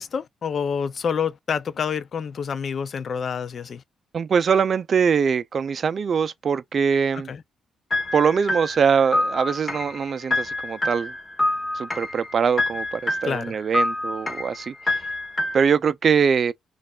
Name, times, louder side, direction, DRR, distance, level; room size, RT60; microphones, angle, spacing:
voice 1, 0.0-3.8 7.3-7.4 13.2-13.5, left 6 dB, 50° left, 0.4 m, -28 dB
voice 2, 4.1-7.3 8.1-11.1 11.7-14.7 15.5-16.5, right 6 dB, 45° right, 0.4 m, -22 dB
sound 1, 7.9-15.6, left 1 dB, 25° left, 0.9 m, -27 dB
4.0 x 2.4 x 2.3 m
cardioid pair, 90°, 0 cm